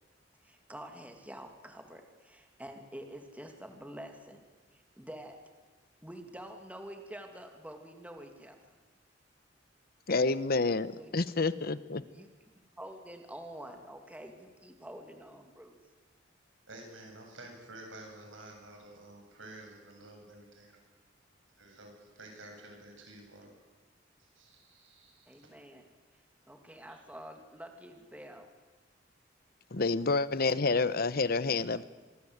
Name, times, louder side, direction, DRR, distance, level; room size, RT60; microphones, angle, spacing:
voice 1, 0.4-4.4 4.7-5.4 6.0-8.7 11.0-11.3 12.1-12.3 12.7-15.8 25.3-25.8 26.5-28.5, right 1 dB, 10° right, 2.6 m, -47 dB
voice 2, 10.1-12.0 29.7-31.8, left 3 dB, 55° left, 1.0 m, -28 dB
voice 3, 16.7-20.8 21.5-23.5 24.2-25.5 26.9-27.0, right 2 dB, 90° right, 7.6 m, -51 dB
25.5 x 23.0 x 8.1 m
head